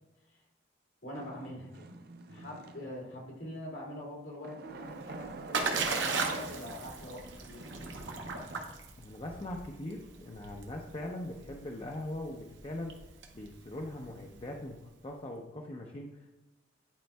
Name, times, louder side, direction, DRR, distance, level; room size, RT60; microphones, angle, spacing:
voice 1, 1.0-1.9 2.3-8.0, left 1 dB, 80° left, -3 dB, 2.1 m, -44 dB
sound 1, 1.1-3.2 4.4-7.1 7.6-8.7, right 3 dB, 55° right, 0.5 m, -47 dB
Splash splatter, 4.8-14.7, right 4 dB, 80° right, 0.9 m, -37 dB
voice 2, 9.0-13.0 13.3-16.3, left 1 dB, 30° left, 0 dB, 0.6 m, -41 dB
10.5 x 4.4 x 2.2 m, 0.99 s
head